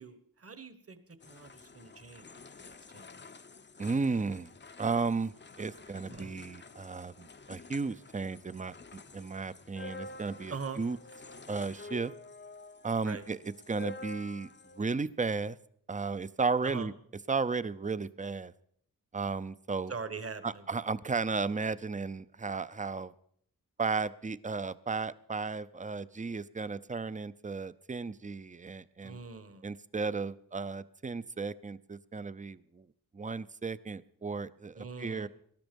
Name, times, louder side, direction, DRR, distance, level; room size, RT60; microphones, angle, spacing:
voice 1, 0.0-3.3 6.1-6.4 10.5-10.8 13.0-13.2 16.6-16.9 19.9-20.7 29.0-29.7 34.7-35.3, right 5 dB, 40° right, 12 dB, 1.3 m, -43 dB
sound 1, 1.2-14.8, left 3 dB, 30° left, 0.6 m, -49 dB
voice 2, 3.8-4.5 4.8-8.7 9.1-11.0 11.5-12.1 12.8-13.4 13.7-14.5 14.8-15.6 15.9-16.9 17.3-18.5 19.1-19.9 20.4-23.1 23.8-29.2 29.6-32.9 33.1-35.3, right 4 dB, 20° right, 16 dB, 0.5 m, -34 dB
19.0 x 12.5 x 5.2 m, 0.66 s
wide cardioid pair, 100°, 36 cm